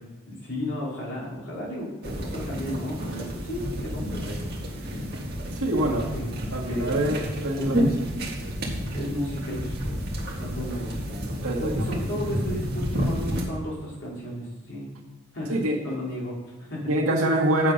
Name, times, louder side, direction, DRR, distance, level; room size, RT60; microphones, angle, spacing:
voice 1, 0.3-5.1 5.7-6.3 6.7-7.1 7.5-8.0 8.9-14.9 15.3-16.9, left 1 dB, 55° left, -5 dB, 3.1 m, -34 dB
sound 1, 2.0-13.4, equal, 45° right, 1.6 m, -30 dB
voice 2, 5.5-6.1 6.5-7.9 11.4-12.0 15.5-15.8 16.9-17.7, right 1 dB, 80° right, -2 dB, 1.9 m, -25 dB
7.5 x 7.4 x 5.2 m, 1.2 s
head